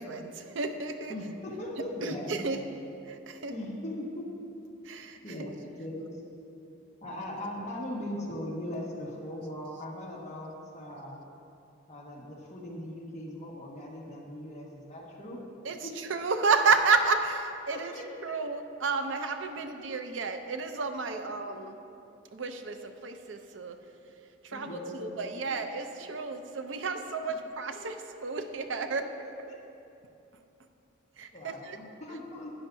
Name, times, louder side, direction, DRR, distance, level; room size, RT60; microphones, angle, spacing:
voice 1, 0.0-1.1 2.0-2.6 3.1-3.5 4.8-5.2 15.6-17.9 18.2-21.7 22.3-23.8 24.4-28.0 28.2-29.1 31.2-31.8, right 4 dB, 75° right, 7 dB, 0.6 m, -31 dB
voice 2, 1.1-2.4 3.5-4.3 5.2-6.1 7.0-11.2 11.9-15.4 15.8-15.9 17.7-18.3 19.8-19.9 21.2-21.6 24.5-25.2 27.7-27.8 29.5-29.6 31.3-32.5, left 1 dB, 40° left, -4 dB, 1.5 m, -39 dB
13.0 x 9.6 x 2.7 m, 2.7 s
head